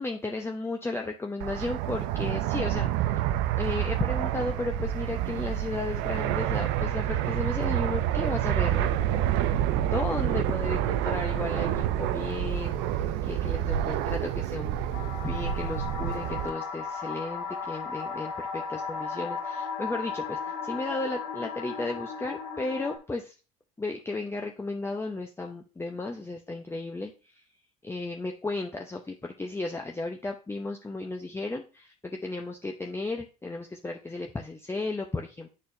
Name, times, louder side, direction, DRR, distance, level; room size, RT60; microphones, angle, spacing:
voice 1, 0.0-3.2 3.6-9.2 9.7-14.8 15.2-23.3 23.8-27.1 27.8-35.5, left 2 dB, 15° left, 2 dB, 0.7 m, -34 dB
Fixed-wing aircraft airplane, 1.4-16.5, right 11 dB, 70° right, 0.5 m, -28 dB
sound 1, 14.9-23.0, left 5 dB, 75° left, 1.6 m, -35 dB
9.4 x 4.2 x 2.6 m, 0.34 s
hypercardioid pair, 70°, 19 cm